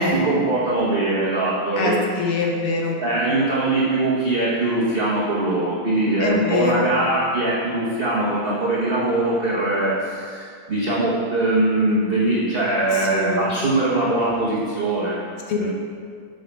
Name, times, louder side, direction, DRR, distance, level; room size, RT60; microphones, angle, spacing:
voice 1, 0.1-2.0 3.0-15.2 15.6-15.7, right 2 dB, 45° right, -6 dB, 0.7 m, -22 dB
voice 2, 1.7-3.0 6.2-6.9 12.9-13.4 15.5-15.6, left 3 dB, 85° left, 0 dB, 1.9 m, -23 dB
6.6 x 6.5 x 4.5 m, 2.2 s
omnidirectional pair, 2.4 m